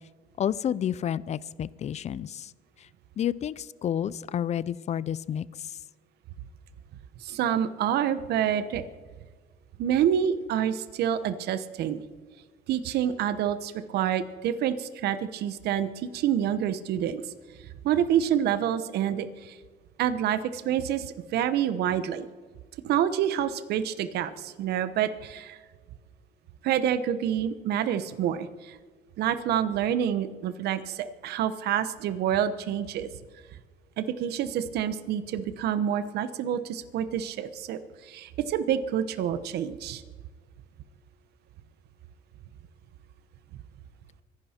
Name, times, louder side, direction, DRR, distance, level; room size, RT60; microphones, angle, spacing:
voice 1, 0.4-2.5 3.2-5.8, left 9 dB, 40° left, 19 dB, 0.5 m, -30 dB
voice 2, 7.2-8.8 9.8-12.0 12.7-17.2 17.8-19.6 20.0-22.3 22.8-25.6 26.6-28.8 29.2-33.1 34.0-40.0, right 9 dB, 75° right, 12 dB, 1.1 m, -27 dB
25.0 x 11.0 x 4.4 m, 1.4 s
cardioid pair, 110°, 17 cm